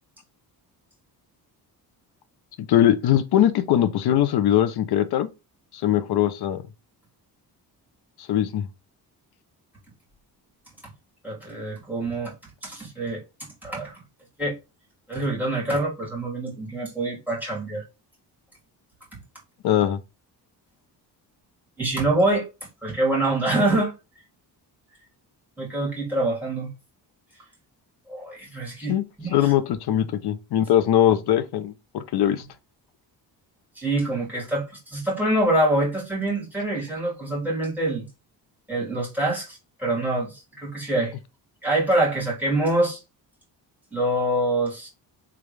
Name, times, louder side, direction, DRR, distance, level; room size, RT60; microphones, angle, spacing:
voice 1, 2.6-5.3 5.8-6.6 8.3-8.7 19.6-20.0 28.9-29.0 29.3-32.4, left 11 dB, 70° left, 0.7 m, -21 dB
voice 2, 11.2-12.3 12.6-13.2 13.6-14.0 14.4-14.5 15.1-17.8 19.1-19.2 21.8-22.5 22.8-23.9 25.6-26.7 28.1-29.5 33.8-38.1 38.7-41.2 41.6-43.0 43.9-44.9, right 1 dB, 5° right, 2.5 m, -25 dB
3.7 x 3.5 x 3.2 m
cardioid pair, 135°, 41 cm